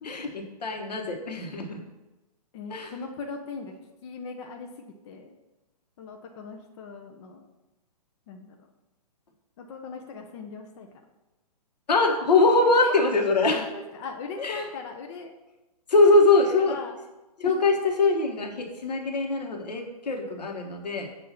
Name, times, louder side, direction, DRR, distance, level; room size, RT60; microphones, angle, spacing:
voice 1, 0.0-1.8 2.7-2.9 11.9-13.7 14.4-14.7 15.9-16.8 17.4-21.1, left 3 dB, 85° left, 2 dB, 1.2 m, -23 dB
voice 2, 2.5-3.7 4.0-4.7 5.0-5.3 6.0-7.4 8.3-8.5 9.6-10.9 12.8-12.9 13.5-15.3 16.4-17.0 17.4-17.5, left 4 dB, 45° left, 3 dB, 0.7 m, -39 dB
7.2 x 2.7 x 5.7 m, 1.0 s
hypercardioid pair, 135°, 20 cm